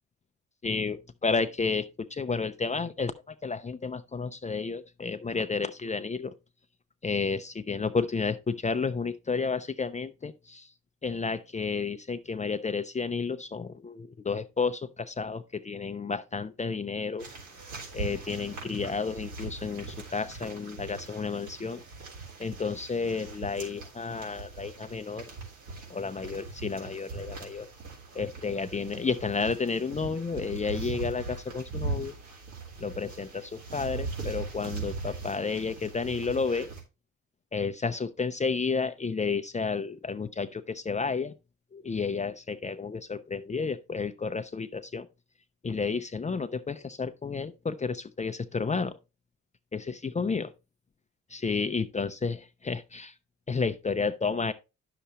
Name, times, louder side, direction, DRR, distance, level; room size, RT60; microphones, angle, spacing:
voice 1, 0.6-1.8 2.1-6.3 7.0-10.7 11.0-17.3 17.9-21.8 22.4-25.3 25.9-27.7 28.1-32.1 32.8-36.7 37.5-41.3 41.7-45.1 45.6-49.0 49.7-50.5 51.3-53.1 53.5-54.5, left 4 dB, 25° left, 0.6 m, -31 dB
sound 1, 17.2-36.8, right 4 dB, 75° right, 3.6 m, -40 dB
10.0 x 6.8 x 2.9 m
cardioid pair, 90°, 30 cm